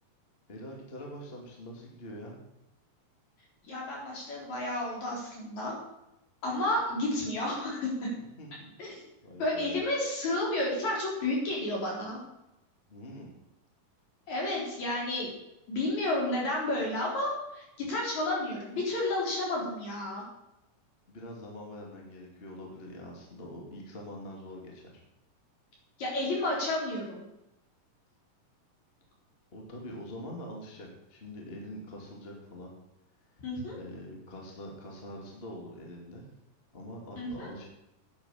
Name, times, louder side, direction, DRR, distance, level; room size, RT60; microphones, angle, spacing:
voice 1, 0.5-2.4 8.1-8.7 9.2-9.8 12.9-13.4 21.1-25.0 29.5-32.7 33.7-36.2 36.7-37.6, equal, 20° left, -1 dB, 2.2 m, -44 dB
voice 2, 3.7-5.7 6.4-8.1 8.8-9.0 9.4-12.2 14.3-15.3 15.7-20.2 26.0-27.2 33.4-33.8 37.2-37.5, left 1 dB, 55° left, -3 dB, 5.2 m, -31 dB
10.5 x 9.4 x 7.4 m, 0.90 s
omnidirectional pair, 3.9 m